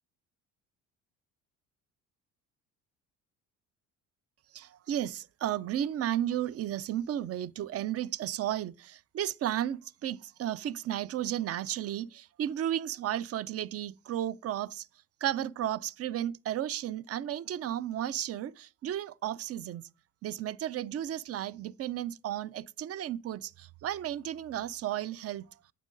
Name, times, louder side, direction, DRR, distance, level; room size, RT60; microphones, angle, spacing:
voice 1, 4.5-14.9 15.2-19.9 20.2-25.5, right 11 dB, 40° right, 0.4 m, -33 dB
8.8 x 7.5 x 2.5 m
supercardioid pair, 65°, 40 cm